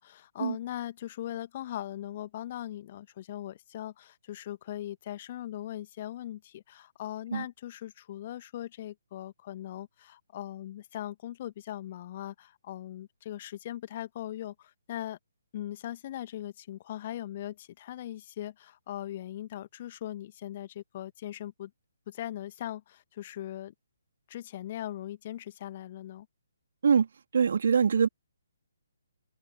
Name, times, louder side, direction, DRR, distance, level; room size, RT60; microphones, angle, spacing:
voice 1, 0.0-15.2 15.5-21.7 22.1-23.7 24.3-26.3, left 12 dB, 35° left, 1.8 m, -40 dB
voice 2, 27.3-28.1, right 6 dB, 50° right, 2.4 m, -23 dB
open air
figure-of-eight pair, 135°, 0 cm